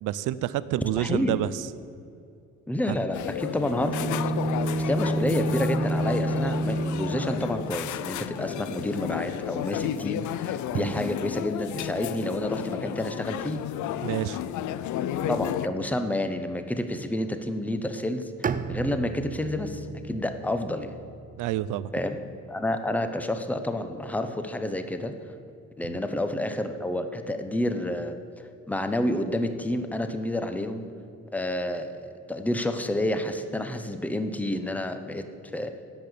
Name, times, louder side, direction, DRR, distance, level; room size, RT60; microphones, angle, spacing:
voice 1, 0.0-1.5 2.9-3.0 10.7-10.9 14.0-14.4 21.4-21.9 25.8-26.0, right 13 dB, 90° right, 16 dB, 0.5 m, -28 dB
voice 2, 1.0-1.3 2.7-4.1 4.8-13.6 15.3-21.0 21.9-22.2 22.5-25.2 25.8-28.2 28.7-30.9 31.3-35.2 35.5-35.7, left 1 dB, 5° left, 8 dB, 0.8 m, -29 dB
sound 1, 3.1-15.7, left 11 dB, 75° left, 0.5 m, -33 dB
Bowed string instrument, 3.7-7.7, right 2 dB, 35° left, 2.7 m, -28 dB
Bowed string instrument 2, 18.4-22.4, right 6 dB, 30° right, 0.5 m, -36 dB
10.5 x 7.9 x 6.8 m, 2.5 s
cardioid pair, 90°, 30 cm